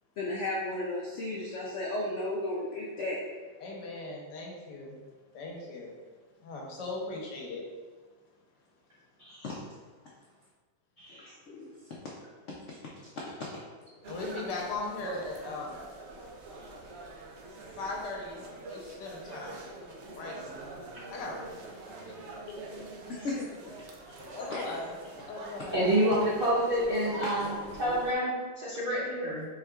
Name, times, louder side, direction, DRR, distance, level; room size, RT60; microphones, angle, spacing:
voice 1, 0.2-3.3 9.2-9.6 11.0-11.7 12.7-12.8 19.3-19.4 23.1-23.7 24.0-24.2 24.5-24.8 27.2-27.3, left 1 dB, 65° left, -4 dB, 0.7 m, -35 dB
voice 2, 3.6-5.0 5.3-6.0 6.4-7.6 14.1-15.8 17.8-19.7 20.1-20.4 21.1-22.2 22.5-22.8 23.1-23.3 24.2-24.9 25.3-25.9 27.0-27.1, left 3 dB, 80° left, -2 dB, 1.5 m, -39 dB
sound 1, 14.0-28.1, right 2 dB, 90° right, 0.6 m, -45 dB
voice 3, 25.7-29.5, right 1 dB, 45° right, -8 dB, 0.7 m, -28 dB
4.7 x 4.3 x 2.3 m, 1.4 s
omnidirectional pair, 1.9 m